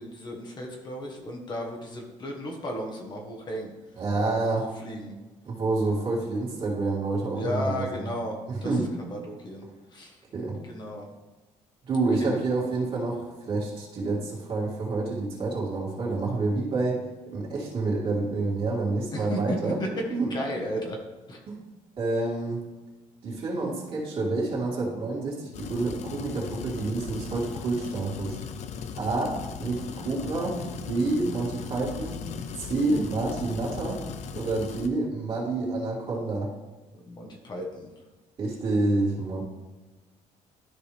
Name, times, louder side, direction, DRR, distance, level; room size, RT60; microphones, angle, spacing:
voice 1, 0.0-3.7 4.2-4.6 4.8-5.1 7.3-8.7 9.1-10.2 10.6-11.1 12.2-12.4 19.1-19.9 20.3-21.0 21.3-21.4 37.0-37.9, equal, 35° left, 0 dB, 1.4 m, -34 dB
voice 2, 3.9-4.7 5.4-8.0 8.5-8.9 10.3-10.5 11.9-17.0 17.3-19.8 20.1-20.3 21.5-21.6 22.0-22.6 23.2-28.4 29.0-30.6 30.9-32.2 32.6-34.0 34.3-36.5 38.4-39.4, right 3 dB, 40° right, -6 dB, 2.6 m, -28 dB
sound 1, 25.5-34.9, left 7 dB, 60° left, 0.7 m, -38 dB
12.5 x 4.8 x 3.4 m, 1.2 s
cardioid pair, 145°, 13 cm